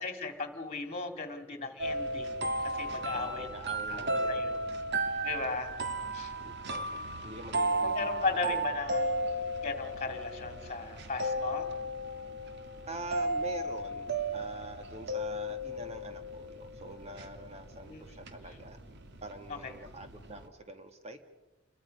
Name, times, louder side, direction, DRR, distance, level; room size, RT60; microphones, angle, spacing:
voice 1, 0.0-3.5 3.9-4.6 5.2-5.7 6.1-6.3 7.8-9.2 9.6-11.7 17.8-18.1 19.6-19.7, left 3 dB, 30° left, 7 dB, 2.6 m, -36 dB
sound 1, 1.8-20.5, right 1 dB, 55° right, 1.7 m, -35 dB
voice 2, 3.1-4.4 6.4-6.8 7.2-8.7 12.8-18.8 19.2-21.2, right 2 dB, 30° right, 6 dB, 1.6 m, -45 dB
29.0 x 22.5 x 5.4 m, 1.1 s
head